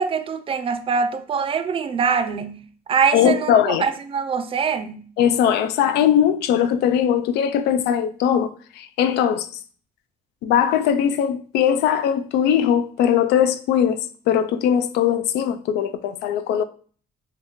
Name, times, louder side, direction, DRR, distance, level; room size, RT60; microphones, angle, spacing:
voice 1, 0.0-2.6 2.9-5.0, right 6 dB, 35° right, 0.3 m, -23 dB
voice 2, 3.1-3.9 5.2-9.5 10.4-14.0 14.3-16.6, left 9 dB, 80° left, 0.4 m, -20 dB
2.8 x 2.7 x 3.5 m
cardioid pair, 110°, 17 cm